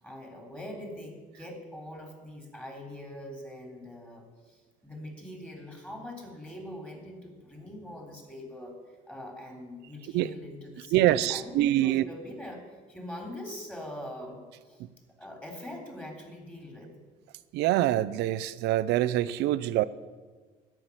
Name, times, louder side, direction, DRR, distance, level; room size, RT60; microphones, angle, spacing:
voice 1, 0.0-14.8 15.2-16.9, left 1 dB, 10° left, 2 dB, 3.4 m, -43 dB
voice 2, 10.9-12.0 17.5-19.8, right 14 dB, 85° right, 15 dB, 0.6 m, -25 dB
13.5 x 6.0 x 9.8 m, 1.4 s
cardioid pair, 110°, 17 cm